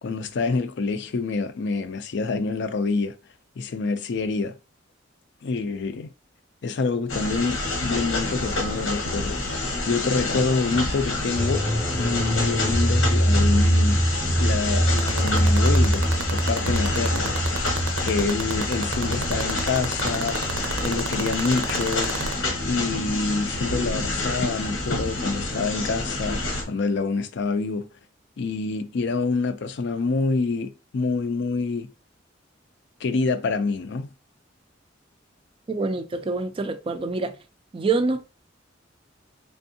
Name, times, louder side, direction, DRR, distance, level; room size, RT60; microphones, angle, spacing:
voice 1, 0.0-3.2 3.6-4.6 5.4-6.1 6.6-9.6 9.9-14.1 14.4-17.3 18.0-20.4 20.8-22.1 22.6-27.9 28.4-31.9 33.0-34.1, left 4 dB, 60° left, 0.4 m, -27 dB
sound 1, 7.1-26.6, left 2 dB, 90° left, 1.0 m, -28 dB
sound 2, 11.3-21.2 21.5-21.6, equal, 10° left, 0.6 m, -24 dB
sound 3, 14.9-22.3, right 6 dB, 90° right, 0.6 m, -28 dB
voice 2, 35.7-37.3 37.7-38.3, right 3 dB, 25° right, 0.3 m, -26 dB
3.5 x 3.4 x 2.7 m
head